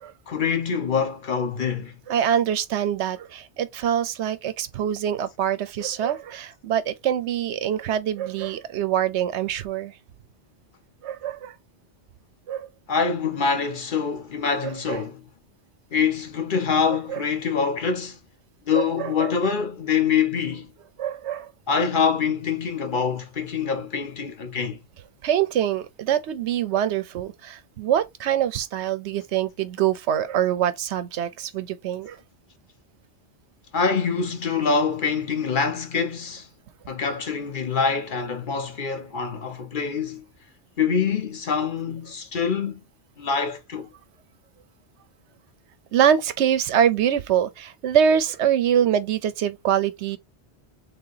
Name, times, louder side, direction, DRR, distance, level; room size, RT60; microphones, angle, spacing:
voice 1, 0.3-1.9 12.9-15.2 15.9-18.2 18.7-20.7 21.7-24.8 33.7-36.5 36.9-40.2 40.8-42.8 43.2-43.9, left 6 dB, 50° left, 0.9 m, -25 dB
voice 2, 2.1-10.0 11.0-11.5 12.5-12.7 14.9-15.0 17.1-17.2 18.7-19.3 21.0-21.5 25.2-32.2 45.9-50.2, right 9 dB, 80° right, 0.9 m, -24 dB
3.8 x 2.8 x 3.8 m
omnidirectional pair, 1.2 m